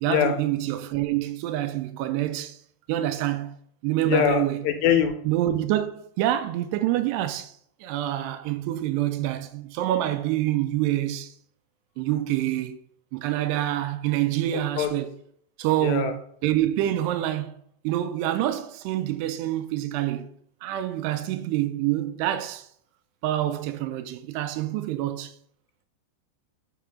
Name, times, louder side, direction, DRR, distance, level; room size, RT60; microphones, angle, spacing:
voice 1, 0.0-2.6 2.9-3.6 3.8-4.6 5.2-11.3 12.0-12.8 13.1-15.1 15.6-17.6 17.8-20.3 20.6-22.7 23.2-25.3, right 13 dB, 80° right, 2.6 m, -26 dB
voice 2, 4.1-5.1 14.8-14.9 15.8-16.1, left 9 dB, 85° left, 2.9 m, -22 dB
7.0 x 5.8 x 3.6 m
omnidirectional pair, 4.9 m